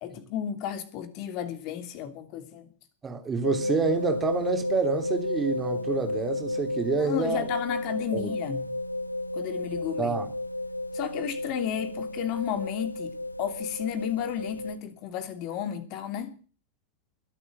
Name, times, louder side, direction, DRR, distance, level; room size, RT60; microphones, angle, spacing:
voice 1, 0.0-2.7 6.8-8.6 9.3-10.2 10.9-13.1 13.4-16.3, left 9 dB, 40° left, 3.0 m, -33 dB
voice 2, 3.0-7.4 8.1-8.3 10.0-10.3, right 5 dB, 20° right, 3.4 m, -28 dB
sound 1, 3.4-14.8, left 1 dB, 85° left, 0.9 m, -32 dB
21.5 x 8.5 x 7.7 m
figure-of-eight pair, 90°, 0 cm